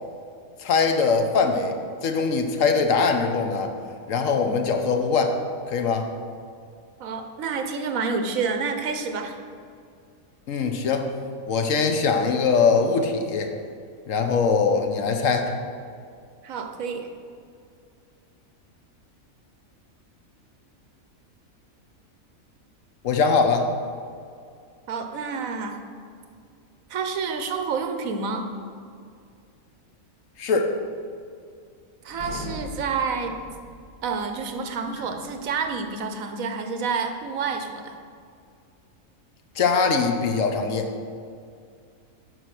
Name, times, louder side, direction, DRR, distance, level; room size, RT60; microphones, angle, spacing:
voice 1, 0.6-1.8 2.0-3.7 4.1-5.4 5.7-6.1 10.5-11.1 11.5-13.5 14.1-15.6 23.0-23.7 30.4-30.7 39.6-40.9, left 5 dB, 70° left, 5 dB, 1.1 m, -22 dB
voice 2, 7.0-9.4 16.4-17.1 24.9-25.8 26.9-28.5 32.0-33.4 34.0-38.0, right 5 dB, 75° right, 6 dB, 1.2 m, -29 dB
sound 1, 32.1-35.9, left 1 dB, 40° left, 1.0 m, -41 dB
10.0 x 4.8 x 5.9 m, 2.3 s
omnidirectional pair, 1.5 m